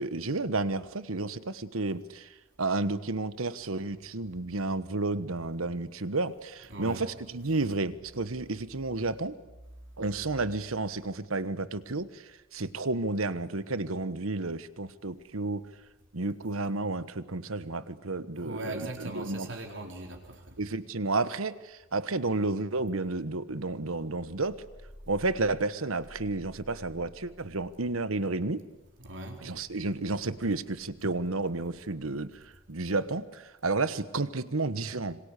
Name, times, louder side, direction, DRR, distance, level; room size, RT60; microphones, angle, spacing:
voice 1, 0.0-2.3 2.6-9.4 10.0-15.6 16.1-19.5 20.6-24.6 25.1-28.6 29.4-32.3 32.7-35.2, right 3 dB, 90° right, 14 dB, 1.3 m, -31 dB
voice 2, 6.7-7.1 18.4-20.6 29.0-29.7, right 2 dB, 60° right, 2 dB, 4.1 m, -40 dB
26.5 x 25.5 x 8.4 m, 1.0 s
head